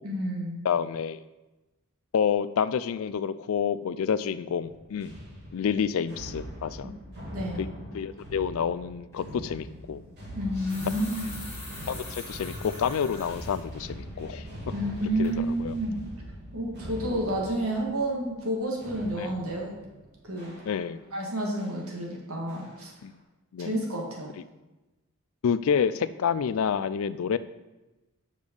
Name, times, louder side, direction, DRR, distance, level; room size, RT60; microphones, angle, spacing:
voice 1, 0.0-0.6 6.8-6.9 7.3-7.6 10.3-11.3 14.7-16.1 16.5-19.7 20.2-20.5 21.1-22.9 23.6-24.3, right 1 dB, 70° right, -1 dB, 1.9 m, -30 dB
voice 2, 0.6-1.2 2.1-5.1 5.5-6.9 7.6-7.7 7.9-10.0 11.9-14.5 15.2-15.3 15.6-15.7 19.2-19.3 20.7-21.0 23.0-23.2 23.5-23.7 25.4-27.4, left 7 dB, 65° left, 15 dB, 0.3 m, -28 dB
sound 1, 4.6-21.1 21.6-21.9 22.5-23.0, equal, 50° right, 2.5 m, -42 dB
sound 2, 9.1-9.3 10.3-13.6 14.1-14.2 14.7-15.0 15.2-15.4, left 2 dB, 15° left, 2.4 m, -44 dB
6.6 x 5.2 x 5.3 m, 1.1 s
head